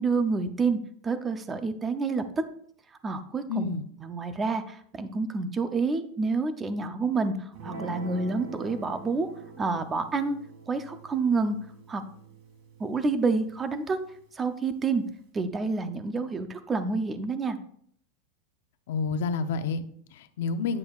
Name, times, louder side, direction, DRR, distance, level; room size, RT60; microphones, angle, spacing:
voice 1, 0.0-2.4 3.0-9.3 9.6-10.4 10.7-11.6 11.9-12.0 12.8-14.0 14.3-15.0 15.3-17.6, right 4 dB, 10° right, 10 dB, 0.5 m, -28 dB
voice 2, 3.5-3.8 18.9-20.8, left 5 dB, 65° left, 10 dB, 0.6 m, -29 dB
Guitar, 7.5-14.1, right 3 dB, 45° right, 1.8 m, -45 dB
9.6 x 8.2 x 2.4 m, 0.64 s
supercardioid pair, 180°, 0 cm